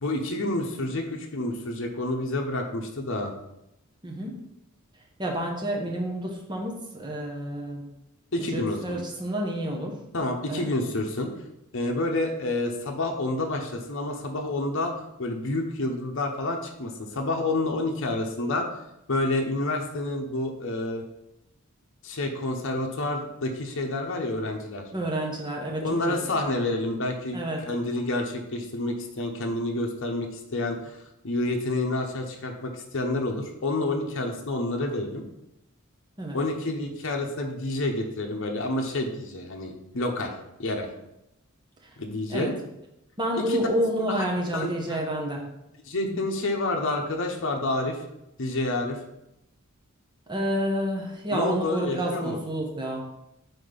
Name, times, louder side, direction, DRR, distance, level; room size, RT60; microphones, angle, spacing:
voice 1, 0.0-3.3 8.3-9.0 10.1-11.3 11.7-14.9 15.2-18.8 19.1-21.0 22.0-24.8 25.8-31.0 31.2-35.2 36.3-40.3 40.6-40.9 42.0-42.5 43.4-43.6 44.0-44.2 44.5-45.0 45.9-48.0 48.4-49.0 51.3-52.4, left 2 dB, 65° left, 2 dB, 0.8 m, -29 dB
voice 2, 4.0-4.3 5.2-7.8 8.4-10.0 10.5-10.7 24.9-26.2 27.3-27.6 36.2-36.4 41.8-41.9 42.3-42.5 43.2-45.4 46.0-46.2 50.3-53.0, right 1 dB, 20° right, 0 dB, 1.0 m, -29 dB
4.4 x 4.2 x 5.0 m, 0.86 s
head